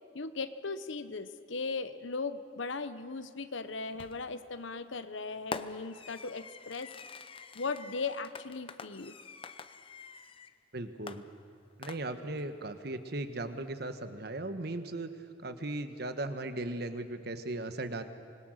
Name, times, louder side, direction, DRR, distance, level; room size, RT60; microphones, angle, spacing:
voice 1, 0.1-6.9 7.5-9.1, left 4 dB, 80° left, 12 dB, 1.0 m, -38 dB
Fireworks, 4.0-4.4 5.5-10.6 11.1-12.4, left 4 dB, 30° left, 0.7 m, -46 dB
voice 2, 10.7-11.2 11.8-15.1 15.4-18.0, right 2 dB, 55° right, 9 dB, 1.3 m, -37 dB
25.5 x 21.0 x 6.5 m, 2.5 s
head